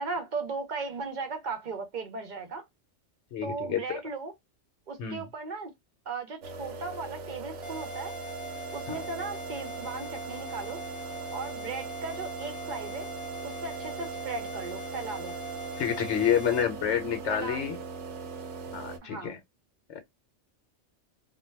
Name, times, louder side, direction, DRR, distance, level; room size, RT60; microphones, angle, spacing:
voice 1, 0.0-2.6 3.4-4.3 4.9-5.7 6.1-8.1 8.7-10.8 11.3-13.1 13.4-15.3 17.3-17.7 19.0-19.4, right 4 dB, 50° right, 0.6 m, -37 dB
voice 2, 3.3-3.8 5.0-5.3 8.9-9.0 15.8-17.8 18.7-19.4, left 9 dB, 80° left, 0.9 m, -28 dB
sound 1, 6.4-19.0, right 4 dB, 85° right, 0.9 m, -40 dB
sound 2, 7.6-16.6, right 2 dB, ahead, 0.8 m, -41 dB
2.2 x 2.2 x 3.1 m
omnidirectional pair, 1.2 m